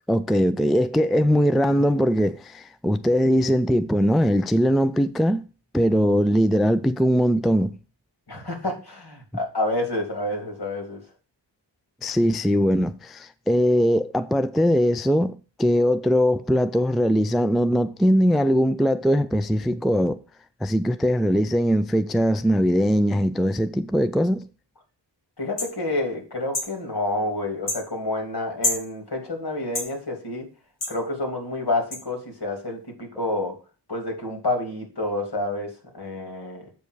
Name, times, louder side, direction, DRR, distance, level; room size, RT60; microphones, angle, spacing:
voice 1, 0.1-5.4 5.7-7.8 12.0-20.2 20.6-24.5, equal, ahead, 0.3 m, -21 dB
voice 2, 8.3-11.0 25.4-30.5 30.9-33.6 33.9-36.7, left 2 dB, 65° left, 2.8 m, -29 dB
sound 1, 25.6-25.7 26.5-26.7 27.7-27.8 28.6-28.8 29.7-29.9 30.8-31.0 31.9-32.0, left 2 dB, 80° left, 2.1 m, -27 dB
7.9 x 5.2 x 4.7 m
wide cardioid pair, 100°, 43 cm